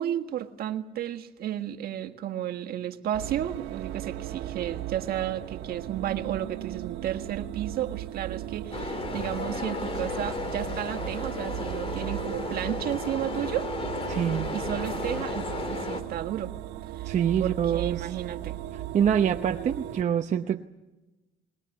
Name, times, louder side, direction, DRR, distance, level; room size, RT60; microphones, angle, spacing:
voice 1, 0.0-13.7 14.5-16.5 16.9-17.1 17.4-18.6, right 11 dB, 65° right, 7 dB, 1.6 m, -33 dB
sound 1, 3.1-20.0, right 14 dB, 90° right, 1.4 m, -37 dB
sound 2, 8.7-16.0, left 3 dB, 35° left, 2.8 m, -34 dB
voice 2, 14.1-14.5 17.0-18.1 18.9-20.6, right 8 dB, 45° right, 5 dB, 0.8 m, -25 dB
21.0 x 21.0 x 8.5 m, 1.1 s
cardioid pair, 110°, 17 cm